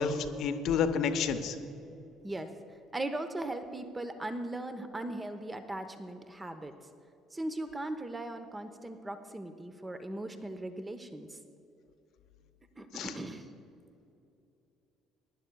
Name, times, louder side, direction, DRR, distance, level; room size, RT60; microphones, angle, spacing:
voice 1, 0.0-1.5 12.9-13.1, left 6 dB, 60° left, 8 dB, 0.8 m, -30 dB
voice 2, 2.9-6.7 7.3-11.4 12.8-13.5, right 1 dB, 20° right, 8 dB, 0.9 m, -38 dB
23.5 x 11.0 x 2.3 m, 2.8 s
hypercardioid pair, 55°, 0 cm